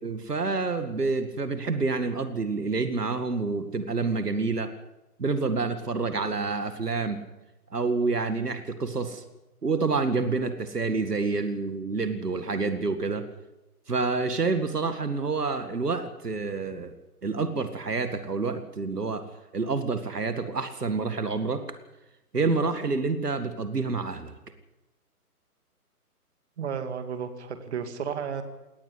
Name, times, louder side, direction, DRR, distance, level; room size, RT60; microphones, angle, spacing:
voice 1, 0.0-4.7 5.2-7.2 7.7-9.2 9.6-13.3 13.9-16.9 17.2-19.3 19.5-21.6 22.3-24.3, right 4 dB, 80° right, 10 dB, 2.1 m, -28 dB
voice 2, 26.6-28.4, right 7 dB, 45° right, 8 dB, 2.3 m, -33 dB
18.5 x 16.0 x 10.0 m, 0.98 s
figure-of-eight pair, 140°, 46 cm